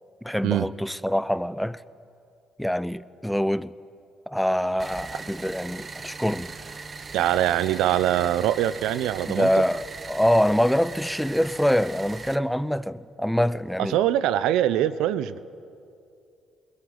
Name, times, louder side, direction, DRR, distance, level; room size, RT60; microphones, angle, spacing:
voice 1, 0.2-1.8 2.6-3.7 4.3-6.5 9.3-14.0, equal, ahead, 0.7 m, -25 dB
worn engine idle, 4.8-12.4, right 4 dB, 35° right, 1.1 m, -39 dB
voice 2, 7.1-9.5 13.9-15.4, right 12 dB, 80° right, 0.7 m, -23 dB
21.0 x 20.5 x 9.7 m
supercardioid pair, 65°, 0 cm